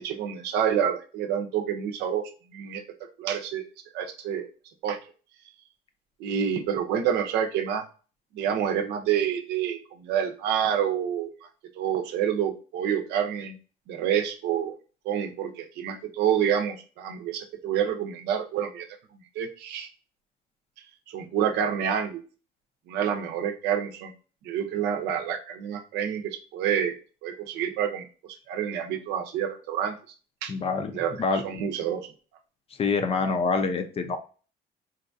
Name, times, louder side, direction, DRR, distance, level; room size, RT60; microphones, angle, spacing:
voice 1, 0.0-2.8 3.2-3.6 3.9-4.5 4.8-5.0 6.2-7.8 8.3-11.3 11.7-13.6 13.9-14.7 15.0-18.9 19.4-19.9 21.1-22.2 22.9-24.1 24.4-26.9 27.2-29.9 30.4-30.5 30.9-32.1, right 9 dB, 85° right, 5 dB, 0.6 m, -28 dB
voice 2, 30.5-30.9 31.2-31.4 32.8-34.2, left 4 dB, 35° left, 7 dB, 0.5 m, -25 dB
3.9 x 2.3 x 2.5 m, 0.36 s
cardioid pair, 110°, 17 cm